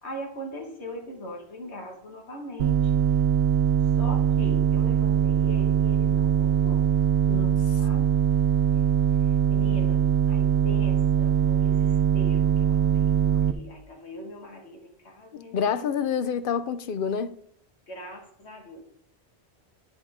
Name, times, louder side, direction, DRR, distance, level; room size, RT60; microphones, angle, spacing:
voice 1, 0.0-3.1 4.0-6.9 7.8-8.1 8.7-8.9 9.2-16.0 17.9-18.8, equal, 90° left, 1.9 m, -41 dB
sound 1, 2.6-13.5, right 9 dB, 75° right, 0.9 m, -22 dB
voice 2, 7.3-7.8 15.3-17.3, left 7 dB, 60° left, 0.7 m, -28 dB
11.5 x 5.0 x 3.5 m
omnidirectional pair, 1.1 m